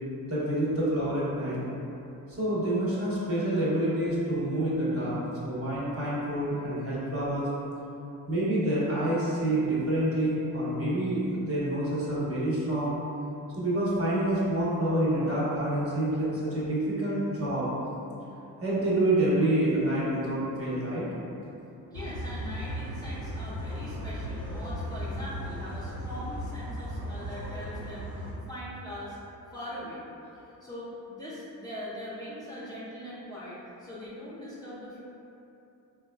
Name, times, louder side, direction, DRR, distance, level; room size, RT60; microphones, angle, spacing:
voice 1, 0.3-1.6 2.3-5.2 5.4-7.5 8.3-12.9 13.5-17.7 18.6-21.1, right 1 dB, 30° right, -8 dB, 1.1 m, -27 dB
voice 2, 21.8-29.2 29.5-30.0 30.5-35.0, equal, 10° left, -10 dB, 0.7 m, -41 dB
sound 1, 21.9-28.3, equal, 80° right, 0.9 m, -36 dB
3.6 x 2.4 x 2.2 m, 2.8 s
supercardioid pair, 50°, 44 cm